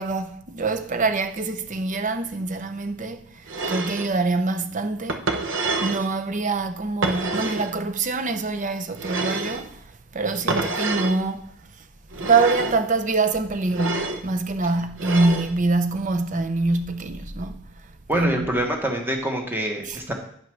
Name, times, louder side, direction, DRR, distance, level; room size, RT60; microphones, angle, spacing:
voice 1, 0.0-5.3 5.8-9.8 10.1-11.5 12.2-17.6 18.1-18.5 19.8-20.0, right 3 dB, 35° right, 0.7 m, -25 dB
sound 1, 3.5-4.1 5.1-6.1 7.0-7.7 9.0-9.7 10.5-11.2 12.1-12.8 13.7-14.2 15.0-15.5, right 3 dB, 60° right, 0.9 m, -27 dB
voice 2, 18.1-20.1, right 1 dB, 10° right, 1.4 m, -25 dB
9.4 x 5.4 x 6.2 m
head